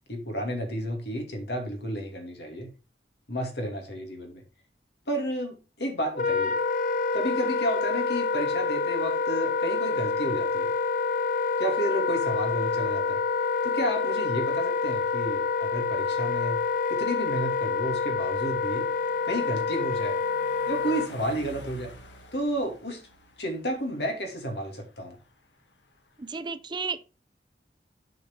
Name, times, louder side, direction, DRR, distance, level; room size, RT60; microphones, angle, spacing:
voice 1, 0.1-2.7 3.3-4.4 5.1-6.6 7.1-10.7 11.6-13.2 13.6-16.6 16.9-18.9 19.2-20.2 20.7-21.9 22.3-23.0 23.4-25.2, equal, 70° left, 2.5 m, -31 dB
Wind instrument woodwind instrument, 6.1-21.1, left 4 dB, 50° left, 0.6 m, -27 dB
sound 1, 15.5-26.4, left 1 dB, 90° left, 1.6 m, -52 dB
voice 2, 26.2-27.1, right 5 dB, 25° right, 0.5 m, -33 dB
8.2 x 5.0 x 5.4 m
head